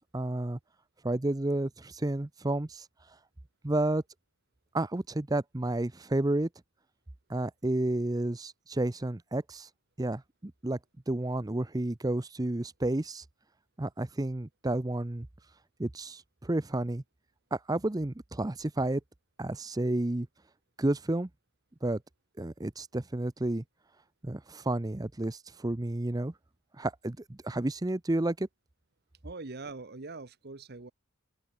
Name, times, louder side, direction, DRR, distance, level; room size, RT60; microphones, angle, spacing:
voice 1, 0.1-0.6 1.0-2.9 3.6-4.0 4.7-6.5 7.3-9.7 10.0-10.8 11.1-13.2 13.8-15.3 15.8-17.0 17.5-19.0 19.4-20.3 20.8-21.3 21.8-22.0 22.4-23.6 24.2-26.3 26.8-28.5, right 1 dB, 15° right, 0.6 m, -31 dB
voice 2, 29.2-30.9, right 3 dB, 45° right, 1.1 m, -42 dB
open air
head